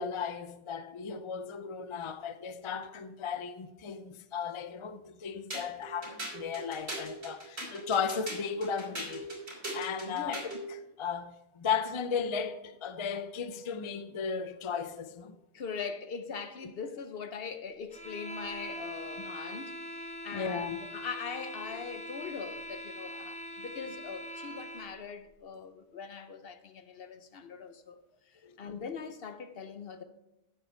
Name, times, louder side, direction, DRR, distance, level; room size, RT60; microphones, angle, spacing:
voice 1, 0.0-9.3 9.7-10.5 11.0-15.3 20.3-20.8 21.7-21.8 28.4-28.9, left 6 dB, 40° left, 0.5 m, -35 dB
sound 1, 5.5-10.7, right 1 dB, 85° right, 4.0 m, -40 dB
voice 2, 10.1-10.4 15.5-28.0 28.6-30.0, left 5 dB, 65° left, 1.0 m, -41 dB
sound 2, 17.9-25.0, equal, 5° left, 1.0 m, -42 dB
9.2 x 7.7 x 4.4 m
omnidirectional pair, 1.1 m